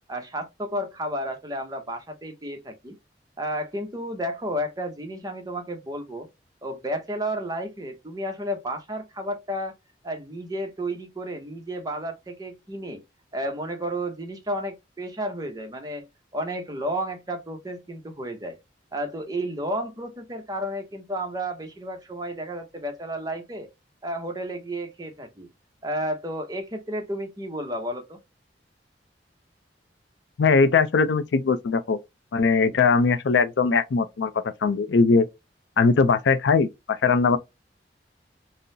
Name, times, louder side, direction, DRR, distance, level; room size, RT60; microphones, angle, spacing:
voice 1, 0.1-3.0 3.4-6.3 6.6-9.7 10.0-13.0 13.3-16.1 16.3-18.6 18.9-23.7 24.0-25.5 25.8-28.2, equal, 20° right, 0.7 m, -32 dB
voice 2, 30.4-32.0 32.3-35.3 35.8-37.4, left 4 dB, 80° left, 0.4 m, -20 dB
3.7 x 2.0 x 2.6 m
head